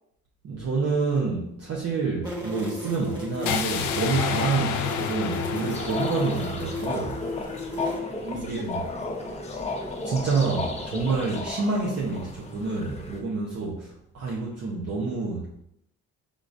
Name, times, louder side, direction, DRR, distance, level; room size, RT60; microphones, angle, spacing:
voice 1, 0.4-7.3 8.3-8.8 9.5-9.6 10.0-15.6, right 4 dB, 55° right, -4 dB, 0.9 m, -28 dB
sound 1, 2.2-8.0, left 3 dB, 15° right, 1.4 m, -34 dB
sound 2, 3.5-7.5, left 7 dB, 85° left, 0.5 m, -30 dB
sound 3, 5.7-13.2, left 2 dB, 20° left, 0.7 m, -34 dB
voice 2, 7.7-9.6, right 3 dB, 40° right, -1 dB, 1.3 m, -44 dB
5.0 x 3.7 x 2.6 m, 0.79 s
cardioid pair, 90°, 30 cm